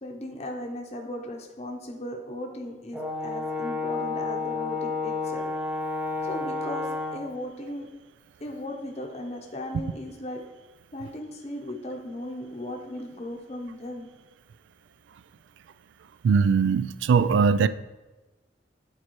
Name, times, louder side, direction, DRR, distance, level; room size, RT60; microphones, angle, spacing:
voice 1, 0.0-5.5 6.2-6.9 7.1-7.9 8.4-10.4 10.9-14.1, left 1 dB, 35° left, 1 dB, 0.7 m, -37 dB
Brass instrument, 2.9-7.3, left 3 dB, 5° right, 0.6 m, -30 dB
voice 2, 16.2-17.7, right 5 dB, 85° right, 14 dB, 0.3 m, -20 dB
8.7 x 4.6 x 3.0 m, 1.1 s
head